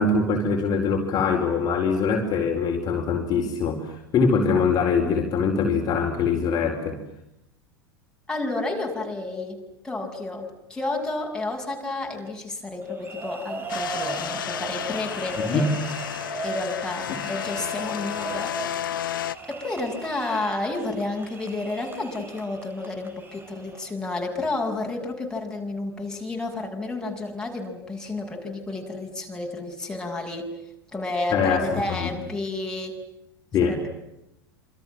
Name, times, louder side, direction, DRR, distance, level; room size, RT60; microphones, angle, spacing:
voice 1, 0.0-7.0 15.4-15.6 31.3-32.1 33.5-33.8, left 5 dB, 30° left, 3 dB, 4.4 m, -23 dB
voice 2, 8.3-9.6 9.8-15.7 16.4-30.5 30.9-33.0 33.6-33.9, left 2 dB, 5° left, 1 dB, 6.9 m, -31 dB
sound 1, 12.8-23.9, right 3 dB, 15° right, 5.7 m, -38 dB
snowmobiles pass by, 13.7-19.3, left 11 dB, 65° left, 1.1 m, -32 dB
28.0 x 27.0 x 7.6 m, 0.85 s
figure-of-eight pair, 85°, 12 cm